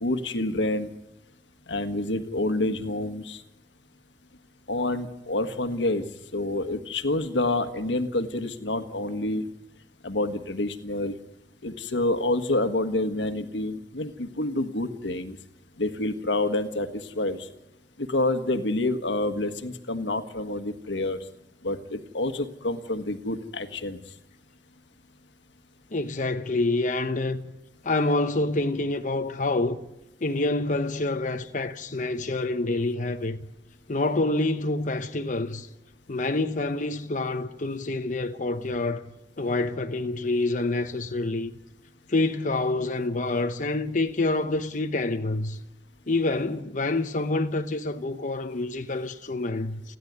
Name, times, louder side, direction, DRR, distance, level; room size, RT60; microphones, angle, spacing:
voice 1, 0.0-0.9 1.7-3.4 4.7-6.0 6.3-9.5 10.0-11.1 11.6-15.4 15.8-16.9 17.1-17.4 18.0-21.2 21.6-24.0, left 2 dB, 85° left, 1.6 m, -28 dB
voice 2, 25.9-27.5 27.8-29.8 30.2-33.4 33.9-35.7 36.1-39.1 39.4-41.5 42.1-45.6 46.1-50.0, left 2 dB, 45° left, 1.0 m, -27 dB
30.0 x 11.0 x 9.6 m
head